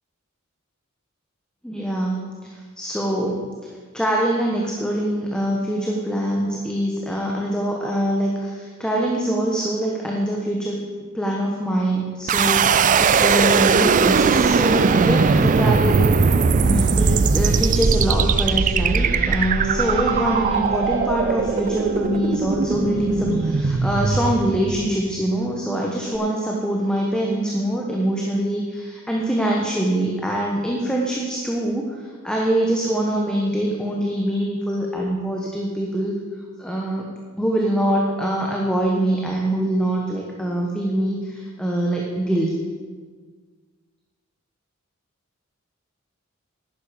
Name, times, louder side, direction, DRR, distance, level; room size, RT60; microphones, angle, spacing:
voice 1, 1.6-3.4 3.9-10.8 11.1-16.1 16.5-32.0 32.2-36.2 36.6-37.1 37.4-42.5, right 1 dB, 5° left, -2 dB, 1.1 m, -24 dB
sound 1, 12.3-25.2, right 5 dB, 40° right, 0.4 m, -19 dB
Guitar, 18.9-23.7, right 2 dB, 70° right, 1.8 m, -32 dB
11.0 x 10.0 x 5.1 m, 1.6 s
head